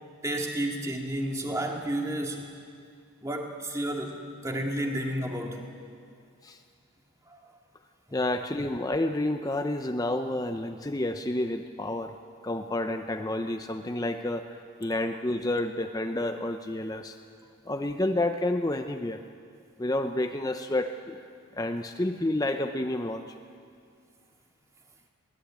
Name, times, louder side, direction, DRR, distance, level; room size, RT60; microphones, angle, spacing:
voice 1, 0.2-2.5 3.2-5.6 7.3-7.4, right 1 dB, 15° right, 1 dB, 2.1 m, -31 dB
voice 2, 8.1-12.1 12.4-14.5 14.8-17.2 17.7-19.2 19.8-21.2 21.6-23.3, left 1 dB, 15° left, 6 dB, 0.6 m, -29 dB
22.0 x 18.0 x 8.8 m, 2.3 s
head